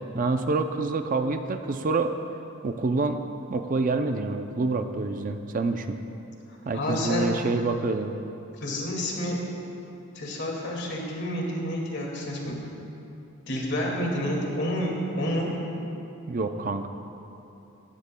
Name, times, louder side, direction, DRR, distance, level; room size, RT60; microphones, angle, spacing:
voice 1, 0.0-2.1 2.6-3.2 3.5-6.0 6.7-8.1 16.3-16.9, right 3 dB, 40° right, 7 dB, 0.5 m, -27 dB
voice 2, 6.7-7.3 8.6-9.4 10.1-12.6 13.5-15.5, left 1 dB, 55° left, -2 dB, 2.1 m, -29 dB
16.5 x 15.5 x 2.2 m, 2.8 s
head